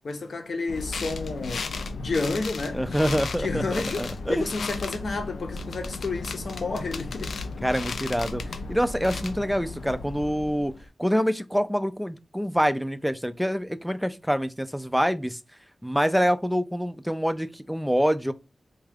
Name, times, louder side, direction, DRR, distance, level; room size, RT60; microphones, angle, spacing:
voice 1, 0.0-2.8 3.3-7.4, left 3 dB, 60° left, 0.7 m, -31 dB
sound 1, 0.7-10.9, left 3 dB, 85° left, 0.3 m, -35 dB
voice 2, 2.7-4.4 7.6-10.7 11.0-15.4 15.8-18.3, equal, ahead, 0.3 m, -26 dB
3.6 x 2.3 x 3.3 m
wide cardioid pair, 130°, 0 cm